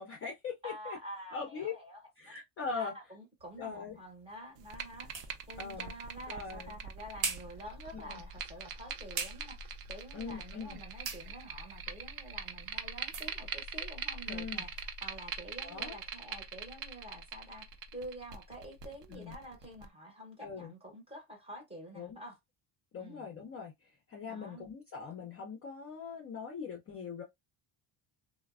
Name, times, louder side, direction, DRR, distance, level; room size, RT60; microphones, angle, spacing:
voice 1, 0.0-1.0 1.3-1.7 2.2-2.9 3.6-4.0 5.6-5.9 6.3-6.8 7.9-8.2 10.1-10.8 14.3-14.6 15.6-16.0 19.1-19.4 20.4-20.7 21.9-22.2 22.9-27.2, left 5 dB, 35° left, 0.4 m, -41 dB
voice 2, 0.6-2.0 2.3-2.4 2.8-5.1 5.5-22.4 23.0-23.3 24.2-24.7, right 1 dB, 15° right, 0.6 m, -48 dB
sound 1, 3.4-14.9, right 5 dB, 70° right, 1.1 m, -46 dB
sound 2, 4.6-19.9, right 6 dB, 55° right, 0.5 m, -43 dB
3.1 x 2.0 x 2.3 m
cardioid pair, 180°, 47 cm